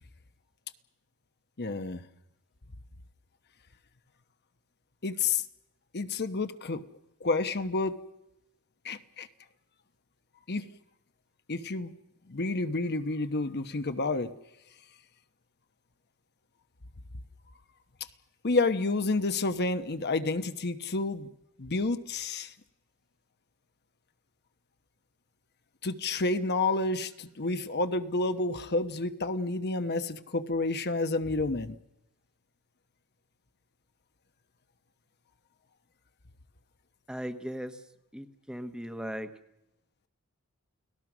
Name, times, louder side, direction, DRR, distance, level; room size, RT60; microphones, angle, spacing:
voice 1, 1.6-2.0 5.0-5.4 5.9-6.8 7.2-7.9 8.8-9.3 10.5-10.7 11.5-11.9 12.3-14.3 18.4-21.3 21.6-22.5 25.8-31.8, left 3 dB, 50° left, 9 dB, 1.0 m, -29 dB
voice 2, 37.1-37.8 38.1-39.3, equal, 5° right, 9 dB, 1.1 m, -37 dB
30.0 x 18.5 x 6.1 m, 0.85 s
head